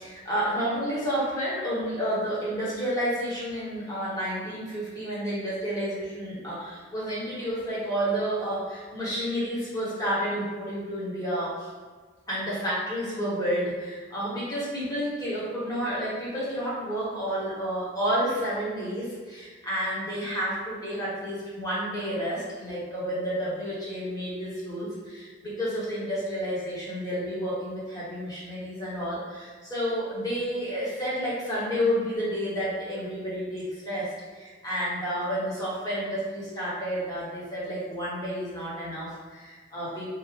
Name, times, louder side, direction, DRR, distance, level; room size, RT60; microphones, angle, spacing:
voice 1, 0.0-11.7 12.3-40.1, equal, 20° left, -9 dB, 1.1 m, -30 dB
3.6 x 2.7 x 3.2 m, 1.5 s
head